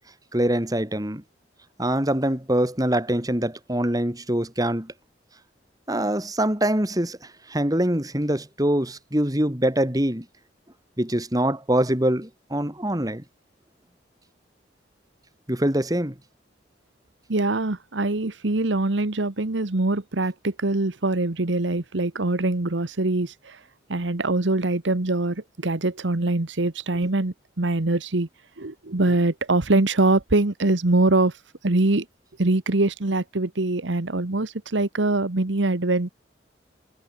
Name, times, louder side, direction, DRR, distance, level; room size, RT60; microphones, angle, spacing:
voice 1, 0.3-1.2 1.8-4.9 5.9-7.2 7.5-10.2 11.0-13.2 15.5-16.1, right 1 dB, 20° right, 2.9 m, -24 dB
voice 2, 17.3-23.6 23.9-28.3 28.6-31.3 31.6-32.0 32.4-36.1, right 2 dB, 80° right, 1.4 m, -23 dB
head